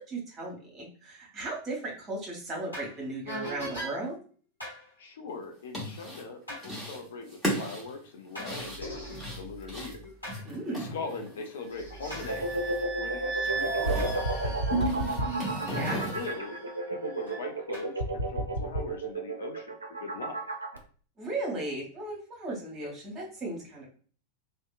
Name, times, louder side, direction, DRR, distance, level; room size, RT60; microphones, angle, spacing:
voice 1, 0.1-4.2 10.4-10.9 15.7-16.0 21.2-23.9, right 2 dB, 25° right, -1 dB, 1.1 m, -36 dB
sound 1, 2.7-2.9 3.3-3.9 4.6-4.8 6.5-6.6 8.3-10.4 11.0-11.1 11.7-17.4 17.7-18.8, right 2 dB, 85° left, 1.0 m, -34 dB
voice 2, 5.0-10.0 10.7-12.4 13.0-14.1 14.4-15.2 15.7-16.6 16.9-20.5, left 4 dB, 60° left, 5 dB, 0.3 m, -41 dB
sound 2, 5.5-6.3 6.6-7.0 7.3-11.6 11.8-12.9 13.1-14.2 14.7-16.3, equal, 5° left, 1.0 m, -37 dB
sound 3, 12.3-20.8, right 2 dB, 75° right, 0.4 m, -33 dB
2.7 x 2.1 x 2.3 m, 0.43 s
figure-of-eight pair, 90°, 0 cm